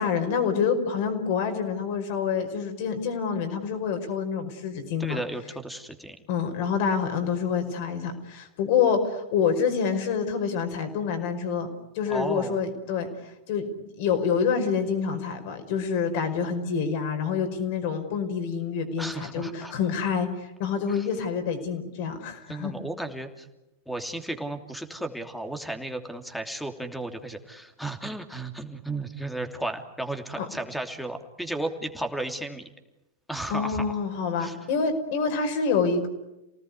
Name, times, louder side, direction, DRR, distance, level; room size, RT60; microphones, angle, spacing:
voice 1, 0.0-5.2 6.3-11.7 11.9-13.1 13.5-22.8 30.4-30.5 33.5-36.1, left 6 dB, 50° left, 6 dB, 5.2 m, -27 dB
voice 2, 5.0-6.1 12.1-12.6 19.0-19.7 20.9-21.1 22.5-23.5 23.9-32.6 33.3-34.0 34.4-34.6, right 1 dB, ahead, 7 dB, 3.0 m, -34 dB
29.0 x 19.0 x 9.7 m, 0.95 s
figure-of-eight pair, 100°, 0 cm